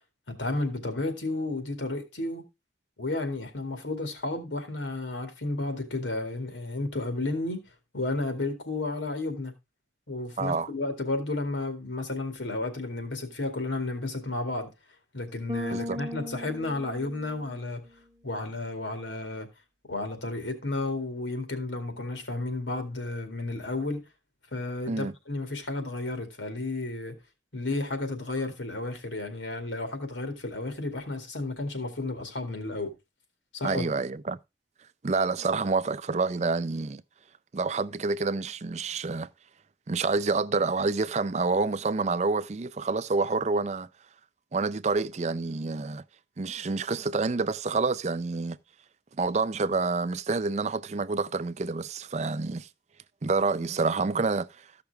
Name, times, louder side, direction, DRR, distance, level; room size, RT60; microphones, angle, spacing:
voice 1, 0.3-2.4 3.0-7.6 7.9-9.5 10.1-14.7 15.1-17.8 18.2-19.5 19.9-24.0 24.5-27.2 27.5-32.9 33.5-33.9, left 2 dB, 85° left, 2.3 m, -32 dB
voice 2, 10.4-10.7 15.7-16.0 24.9-25.1 33.6-34.4 35.0-37.0 37.5-39.3 39.9-43.9 44.5-46.0 46.4-48.6 49.2-52.7 53.2-54.6, right 3 dB, 35° right, 0.4 m, -28 dB
Bass guitar, 15.5-17.8, left 1 dB, 20° right, 0.8 m, -37 dB
14.5 x 5.9 x 3.4 m
head